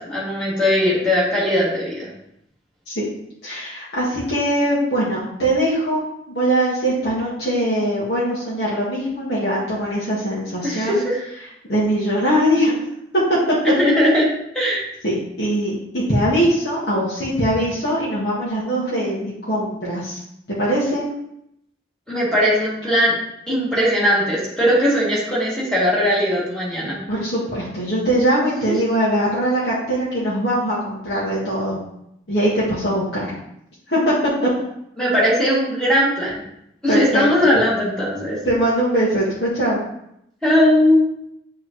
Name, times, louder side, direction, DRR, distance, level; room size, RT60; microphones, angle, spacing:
voice 1, 0.1-2.1 10.6-11.2 13.8-14.3 14.5-14.8 22.1-23.1 23.5-27.0 28.7-28.8 35.0-36.4 36.8-38.4 40.4-41.0, equal, 5° left, -9 dB, 2.5 m, -19 dB
voice 2, 3.4-11.0 11.7-12.8 15.0-20.2 20.5-21.1 27.1-31.8 32.3-33.4 33.9-34.1 34.4-34.5 36.9-37.3 38.4-39.8, right 1 dB, 65° left, -8 dB, 1.8 m, -21 dB
8.4 x 3.8 x 3.1 m, 0.76 s
head